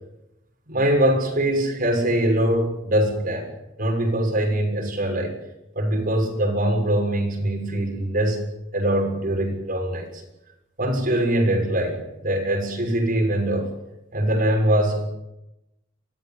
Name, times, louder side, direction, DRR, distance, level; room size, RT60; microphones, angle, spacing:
voice 1, 0.7-3.5 3.8-5.4 5.7-8.5 8.7-10.2 10.8-13.7 14.1-15.0, right 1 dB, 50° right, 1 dB, 6.9 m, -22 dB
24.0 x 15.5 x 9.2 m, 0.91 s
head